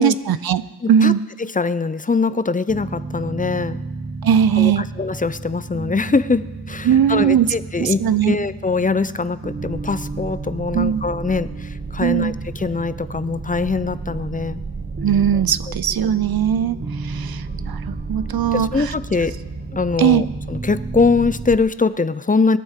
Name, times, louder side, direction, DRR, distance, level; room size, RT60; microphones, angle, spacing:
voice 1, 0.0-0.6 0.9-1.2 4.2-4.9 6.9-7.5 7.8-8.4 10.7-11.0 12.0-12.3 15.0-16.8 17.1-17.4 17.7-18.7 20.0-20.2, right 9 dB, 65° right, 16 dB, 0.6 m, -18 dB
voice 2, 0.8-1.1 1.4-3.8 4.5-14.6 15.3-15.4 18.5-19.3 19.7-22.6, left 4 dB, 20° left, 14 dB, 0.5 m, -22 dB
sound 1, 2.7-21.6, right 3 dB, 25° right, 0.8 m, -31 dB
21.0 x 13.5 x 3.7 m, 1.2 s
wide cardioid pair, 85°, 40 cm